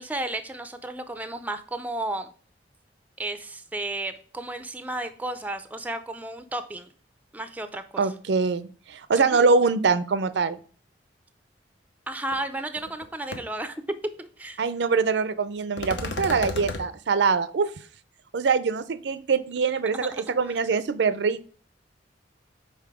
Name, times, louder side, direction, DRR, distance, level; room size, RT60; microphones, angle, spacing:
voice 1, 0.0-2.3 3.2-6.9 7.3-8.0 9.2-9.4 12.1-13.8 14.2-14.6 20.1-20.4, right 2 dB, 10° right, 10 dB, 0.4 m, -33 dB
voice 2, 8.0-10.6 14.6-17.7 18.3-21.5, right 4 dB, 70° right, 14 dB, 0.5 m, -24 dB
sound 1, 12.3-12.4 12.8-13.0 13.3-13.4 15.8-16.8, left 3 dB, 85° left, 0.8 m, -32 dB
5.7 x 4.2 x 4.7 m, 0.42 s
head